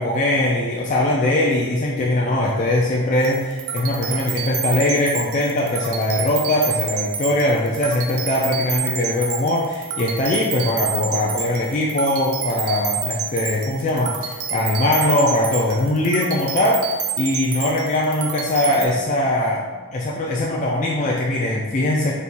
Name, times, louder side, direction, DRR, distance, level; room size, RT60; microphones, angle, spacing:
voice 1, 0.0-22.1, left 1 dB, 35° left, -3 dB, 0.3 m, -21 dB
sound 1, 3.2-18.9, right 8 dB, 75° right, 0.5 m, -29 dB
4.2 x 3.5 x 2.5 m, 1.5 s
head